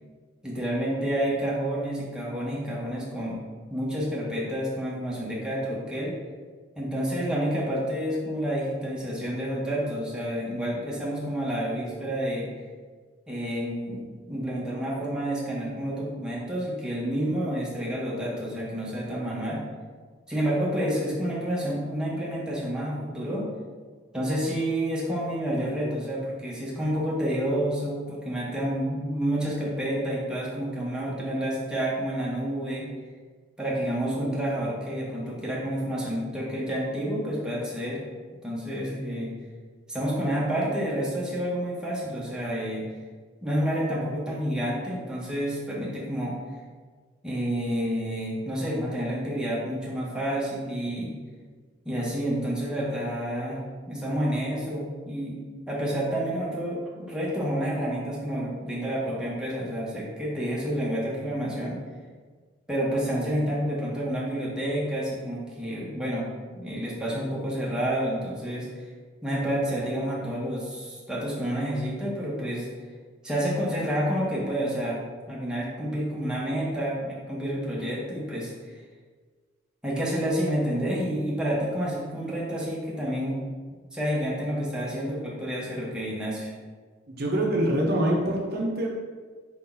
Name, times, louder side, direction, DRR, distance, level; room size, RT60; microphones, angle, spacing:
voice 1, 0.4-3.4 3.7-6.1 6.8-12.5 13.3-19.6 20.3-23.5 24.1-32.9 33.6-38.0 38.4-39.3 39.9-42.9 43.4-46.3 47.2-51.2 51.8-53.6 53.9-55.4 55.7-61.8 62.7-68.7 69.2-72.7 73.2-75.0 75.3-78.8 79.8-83.4 83.9-86.5, equal, 5° right, -6 dB, 0.8 m, -29 dB
voice 2, 87.1-88.9, right 1 dB, 55° right, -1 dB, 0.7 m, -25 dB
4.6 x 2.8 x 3.8 m, 1.5 s
head